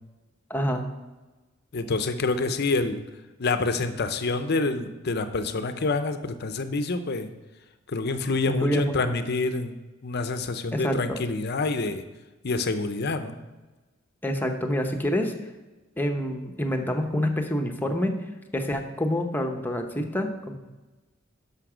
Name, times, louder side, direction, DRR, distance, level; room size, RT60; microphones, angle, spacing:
voice 1, 0.5-0.9 8.5-9.1 10.7-11.2 14.2-15.3 16.0-18.1 18.5-20.6, equal, 10° left, 4 dB, 0.9 m, -27 dB
voice 2, 1.7-3.0 3.4-7.3 7.9-9.7 10.0-12.0 12.4-13.3, left 3 dB, 55° left, 9 dB, 0.6 m, -27 dB
12.0 x 5.8 x 5.0 m, 1.2 s
head